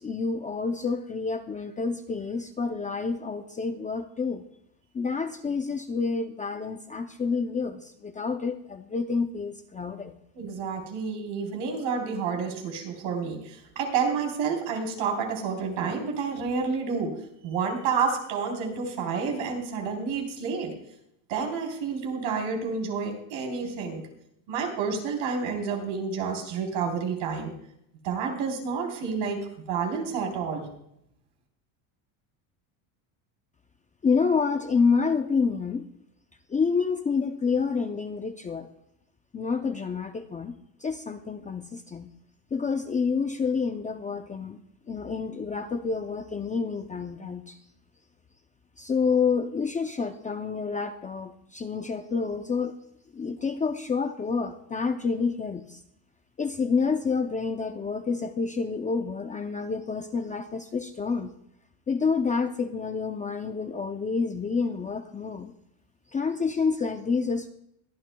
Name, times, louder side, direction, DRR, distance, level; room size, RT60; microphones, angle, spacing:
voice 1, 0.0-4.4 4.9-10.1 34.0-35.8 36.5-38.7 39.3-40.5 40.8-42.1 42.5-44.6 44.9-47.6 48.8-52.7 53.1-55.8 56.4-61.3 61.9-65.5 66.1-67.5, left 5 dB, 15° left, 6 dB, 0.5 m, -28 dB
voice 2, 10.3-17.1 17.4-20.7 21.3-24.0 24.5-27.5 28.0-30.7, right 5 dB, 70° right, 3 dB, 3.7 m, -29 dB
22.5 x 11.0 x 2.2 m, 0.77 s
cardioid pair, 140°, 49 cm